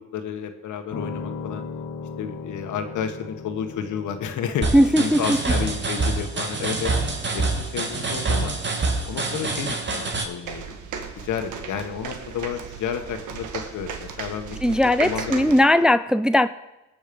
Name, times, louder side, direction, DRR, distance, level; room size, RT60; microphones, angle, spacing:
voice 1, 0.1-1.6 2.2-6.9 7.3-8.5 9.1-10.7 11.2-15.5, left 7 dB, 80° left, 6 dB, 1.7 m, -31 dB
Piano, 0.9-11.0, left 5 dB, 60° left, 1.6 m, -40 dB
sound 1, 4.6-10.2, right 3 dB, 35° right, 2.3 m, -26 dB
voice 2, 4.7-5.2 14.6-16.5, left 1 dB, 5° right, 12 dB, 0.4 m, -18 dB
sound 2, 10.4-15.6, right 6 dB, 80° right, 1.7 m, -35 dB
19.5 x 7.1 x 5.4 m, 1.0 s
cardioid pair, 90°, 30 cm